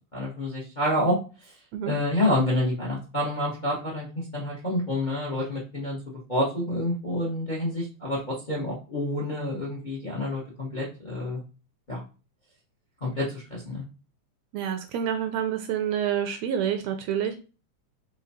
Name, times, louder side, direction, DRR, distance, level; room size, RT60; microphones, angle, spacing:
voice 1, 0.1-1.2 1.8-8.2 8.5-11.4 11.9-12.0 13.0-13.2 13.5-13.8, left 1 dB, 40° left, -4 dB, 0.6 m, -28 dB
voice 2, 14.5-17.4, right 9 dB, 75° right, 7 dB, 1.6 m, -28 dB
4.9 x 3.9 x 2.8 m, 0.33 s
omnidirectional pair, 3.5 m